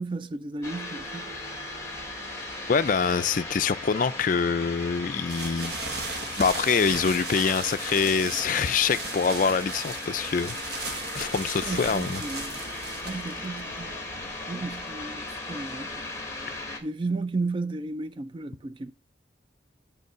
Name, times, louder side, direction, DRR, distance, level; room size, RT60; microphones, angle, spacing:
voice 1, 0.0-1.3 11.6-12.6 13.0-13.9 14.5-16.0 16.8-18.9, right 3 dB, 25° right, 0.3 m, -33 dB
sound 1, 0.6-16.8, left 2 dB, 15° left, 1.2 m, -37 dB
voice 2, 2.7-5.8 6.4-12.2, left 5 dB, 45° left, 0.4 m, -25 dB
sound 2, 5.3-14.9, right 3 dB, 60° right, 1.4 m, -37 dB
8.0 x 3.7 x 6.5 m
head